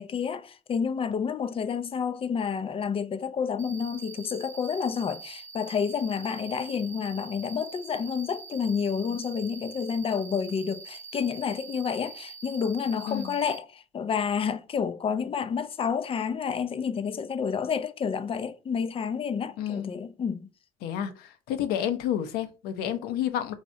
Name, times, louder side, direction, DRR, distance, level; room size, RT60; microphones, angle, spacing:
voice 1, 0.0-20.4, left 6 dB, 35° left, 0.5 m, -29 dB
Cricket, 3.6-13.6, right 5 dB, 10° left, 1.1 m, -45 dB
voice 2, 19.6-19.9 20.8-23.5, left 10 dB, 70° left, 0.7 m, -30 dB
4.0 x 2.8 x 4.7 m
hypercardioid pair, 60°, 17 cm